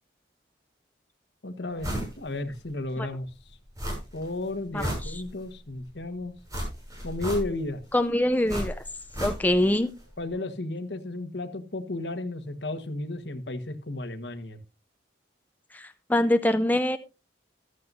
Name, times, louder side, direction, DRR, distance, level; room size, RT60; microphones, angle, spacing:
voice 1, 1.4-3.3 4.1-6.3 7.0-7.8 10.2-14.6, left 2 dB, 70° left, 9 dB, 1.4 m, -33 dB
sound 1, 1.8-2.1 2.5-2.6 3.8-4.3 4.6-5.6 6.5-7.8 8.5-9.7 10.0-10.1, equal, 20° right, 6.9 m, -33 dB
voice 2, 4.7-5.2 7.9-8.8 9.2-9.9 15.7-17.0, left 1 dB, 10° left, 10 dB, 0.5 m, -24 dB
14.5 x 12.0 x 2.6 m, 0.28 s
head